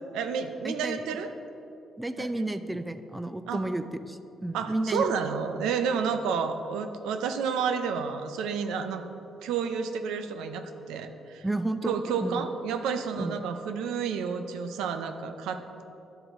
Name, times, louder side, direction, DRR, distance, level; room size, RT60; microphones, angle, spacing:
voice 1, 0.1-1.3 2.2-2.3 3.5-3.6 4.5-9.1 9.4-11.4 11.8-15.8, right 6 dB, 85° right, 7 dB, 0.4 m, -30 dB
voice 2, 0.6-1.1 2.0-5.1 11.4-12.5 13.2-13.3, right 1 dB, 10° right, 10 dB, 0.4 m, -32 dB
11.5 x 3.9 x 4.5 m, 3.0 s
supercardioid pair, 60°, 0 cm